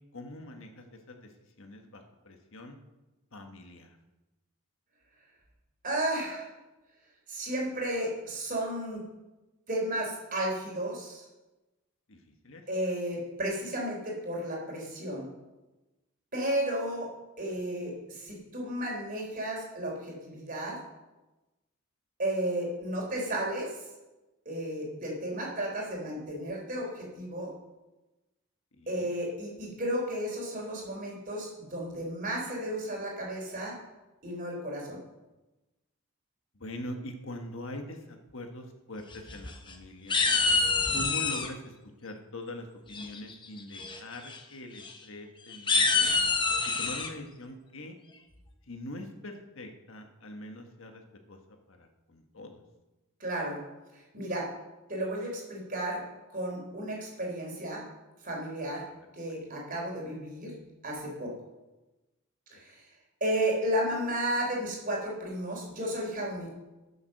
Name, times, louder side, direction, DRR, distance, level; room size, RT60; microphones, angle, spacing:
voice 1, 0.1-1.3 1.6-2.8 3.3-4.0 12.1-12.6 28.7-29.1 36.5-40.2 40.9-41.7 42.0-46.1 46.8-48.0 48.7-51.0 51.3-51.4 51.7-52.6 59.0-59.8 62.5-62.6 63.3-63.4, left 1 dB, 65° left, 4 dB, 1.4 m, -43 dB
voice 2, 5.8-6.5 7.3-9.0 9.7-11.2 12.7-15.3 16.3-17.1 17.4-20.8 22.2-23.8 24.5-27.5 28.9-33.8 34.2-35.0 53.2-53.6 54.1-54.5 54.9-56.0 56.3-57.8 58.2-58.8 59.1-60.5 60.8-61.3 62.5-62.8 63.2-66.5, right 1 dB, 40° right, -1 dB, 3.8 m, -33 dB
sound 1, 39.1-39.7 40.1-41.5 42.9-43.3 43.7-44.0 44.2-44.4 44.8-44.9 45.5-47.1, left 4 dB, 20° left, 0.9 m, -26 dB
15.0 x 7.1 x 6.5 m, 1.1 s
head